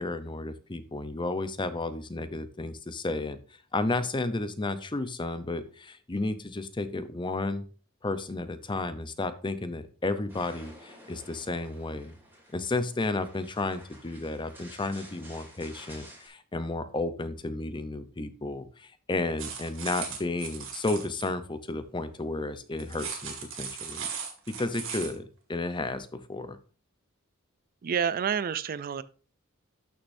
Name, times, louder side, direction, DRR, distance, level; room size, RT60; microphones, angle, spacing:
voice 1, 0.0-3.4 3.7-7.7 8.0-12.1 12.5-24.1 24.5-26.6, left 2 dB, 20° left, 0.6 m, -32 dB
sound 1, 10.3-16.3, right 1 dB, 10° right, 2.8 m, -51 dB
sound 2, 19.4-21.3 22.8-25.2, right 6 dB, 65° right, 2.0 m, -37 dB
voice 2, 27.8-29.0, right 7 dB, 45° right, 0.4 m, -28 dB
12.5 x 6.5 x 2.6 m
head